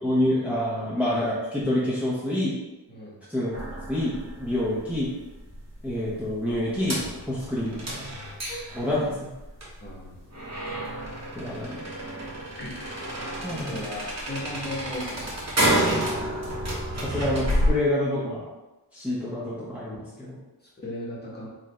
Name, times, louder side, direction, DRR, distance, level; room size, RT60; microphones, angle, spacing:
voice 1, 0.0-2.5 3.3-3.5 3.9-5.1 5.8-7.0 7.3-8.1 8.7-9.3 11.3-11.7 13.4-13.8 17.0-18.4 18.9-20.4, left 1 dB, 5° right, -8 dB, 0.8 m, -27 dB
sound 1, 3.5-17.7, equal, 40° right, 1.0 m, -30 dB
voice 2, 9.8-10.2 12.6-12.8 13.5-15.5 20.8-21.5, left 1 dB, 25° left, -6 dB, 1.1 m, -36 dB
3.2 x 2.5 x 4.2 m, 1.0 s
wide cardioid pair, 110°, 41 cm